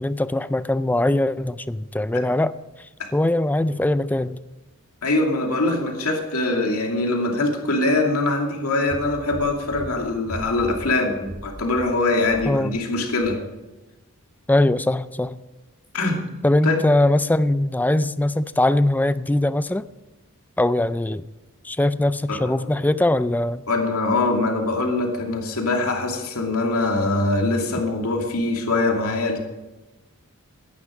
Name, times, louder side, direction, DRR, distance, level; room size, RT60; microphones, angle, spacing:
voice 1, 0.0-2.5 3.1-4.4 12.5-12.8 14.5-15.4 16.4-19.9 20.6-21.3 21.6-23.6, left 1 dB, 10° left, 15 dB, 0.4 m, -21 dB
voice 2, 5.0-13.4 15.9-16.2 16.6-16.8 22.3-22.7 23.7-29.4, left 2 dB, 75° left, 2 dB, 2.5 m, -23 dB
sound 1, 8.9-12.9 13.2-13.3, right 1 dB, 35° right, 2.6 m, -38 dB
16.0 x 10.5 x 5.0 m, 1.1 s
head